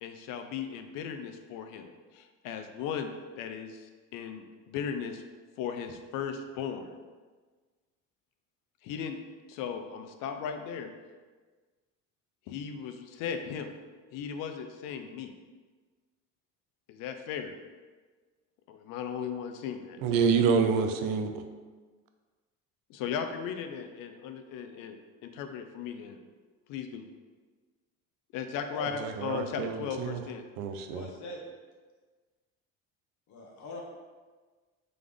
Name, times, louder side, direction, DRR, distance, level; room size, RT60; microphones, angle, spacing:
voice 1, 0.0-5.2 5.6-6.9 8.8-9.2 9.5-10.9 12.5-13.7 14.1-15.3 16.9-17.5 18.7-20.0 22.9-26.2 26.7-27.0 28.3-30.5, left 7 dB, 75° left, 7 dB, 0.5 m, -37 dB
voice 2, 20.0-21.4 29.0-30.2 30.6-31.1, right 5 dB, 85° right, 7 dB, 0.5 m, -27 dB
voice 3, 30.9-31.4 33.3-33.8, left 1 dB, 60° left, 0 dB, 0.9 m, -42 dB
3.8 x 3.3 x 3.5 m, 1.4 s
cardioid pair, 145°, 33 cm